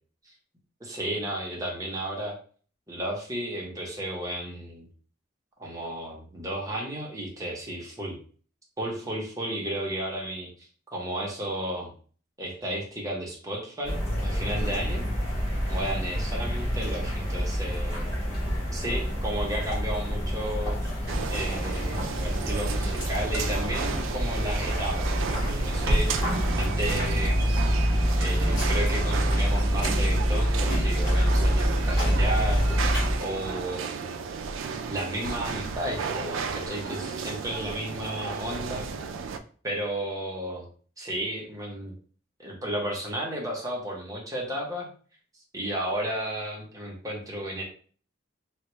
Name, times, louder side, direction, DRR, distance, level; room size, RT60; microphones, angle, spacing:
voice 1, 0.8-2.3 2.9-4.9 5.6-8.2 8.8-11.9 12.4-15.1 15.7-18.1 18.7-27.5 28.2-32.6 33.2-34.1 34.9-38.9 39.6-40.6 41.0-41.9 42.4-44.9 45.5-47.6, right 1 dB, 20° right, -2 dB, 0.8 m, -33 dB
sound 1, 13.8-33.2, equal, 20° left, 1.2 m, -26 dB
sound 2, 21.1-39.4, right 5 dB, 90° right, 0.4 m, -34 dB
3.3 x 2.3 x 3.1 m, 0.43 s
head